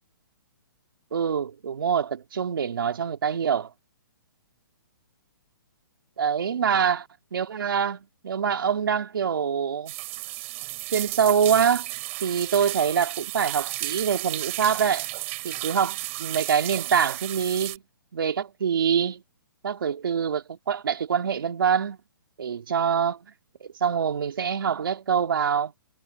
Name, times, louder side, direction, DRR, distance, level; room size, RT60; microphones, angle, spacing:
voice 1, 1.1-3.7 6.2-7.0 7.3-9.9 10.9-11.9 12.2-15.1 15.4-17.8 18.1-19.2 19.6-22.0 22.4-23.3 23.6-25.7, right 7 dB, 75° right, 2.5 m, -25 dB
sound 1, 9.9-17.8, right 20 dB, 35° right, 5.5 m, -33 dB
hypercardioid pair, 150°, 12 cm